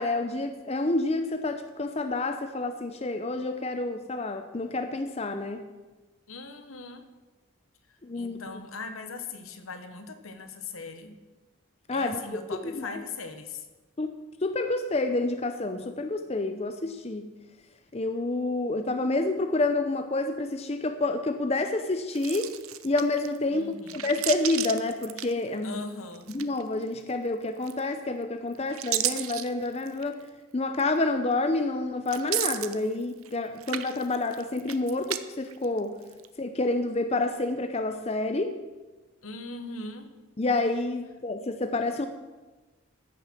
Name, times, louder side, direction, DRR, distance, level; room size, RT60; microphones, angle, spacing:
voice 1, 0.0-5.7 8.0-8.4 11.9-13.0 14.0-17.3 17.9-22.5 22.8-25.8 26.3-30.2 30.5-35.9 36.4-38.6 40.4-42.1, left 2 dB, 30° left, 8 dB, 0.6 m, -28 dB
voice 2, 6.3-7.1 8.1-11.2 11.9-13.7 23.5-24.0 25.6-26.3 39.2-40.1, left 3 dB, 80° left, 8 dB, 1.2 m, -39 dB
sound 1, 22.1-23.4 23.8-25.8 26.1-26.8 27.6-28.1 28.5-30.1 30.7-30.8 32.0-33.3 33.6-35.2 35.5-36.3, right 13 dB, 85° right, 0.6 m, -33 dB
14.5 x 6.7 x 6.1 m, 1.2 s
head